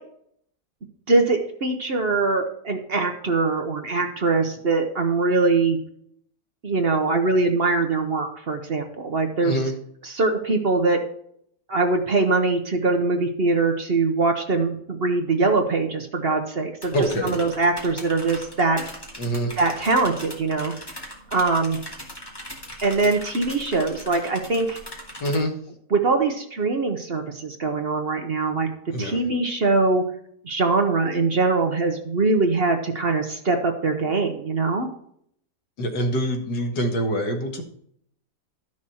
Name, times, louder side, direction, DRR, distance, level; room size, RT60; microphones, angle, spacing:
voice 1, 1.1-5.8 6.6-9.6 10.0-11.0 11.7-16.9 17.2-18.8 19.6-20.7 21.3-21.8 22.8-24.8 25.9-28.7 29.0-30.0 30.4-34.9, right 3 dB, 45° right, 4 dB, 1.0 m, -22 dB
voice 2, 9.4-9.7 16.9-17.4 19.2-19.5 25.2-25.5 28.9-29.2 35.8-37.6, equal, 90° left, 3 dB, 2.2 m, -25 dB
sound 1, 16.8-25.4, equal, 15° left, 2.1 m, -39 dB
12.5 x 6.3 x 4.3 m, 0.68 s
omnidirectional pair, 1.8 m